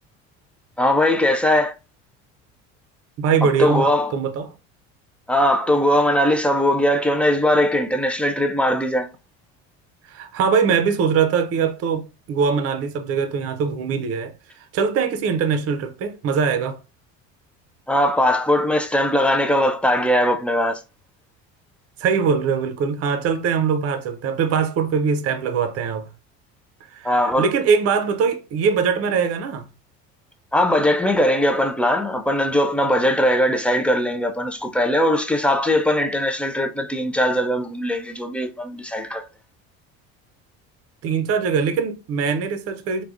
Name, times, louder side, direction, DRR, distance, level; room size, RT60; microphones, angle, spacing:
voice 1, 0.8-1.7 3.4-4.1 5.3-9.1 17.9-20.8 27.0-27.5 30.5-39.3, left 1 dB, 5° left, 0.3 m, -20 dB
voice 2, 3.2-4.5 10.1-16.8 22.0-26.1 26.9-29.7 41.0-43.0, right 6 dB, 45° right, 0.6 m, -22 dB
3.4 x 2.2 x 2.4 m
supercardioid pair, 100°, 33 cm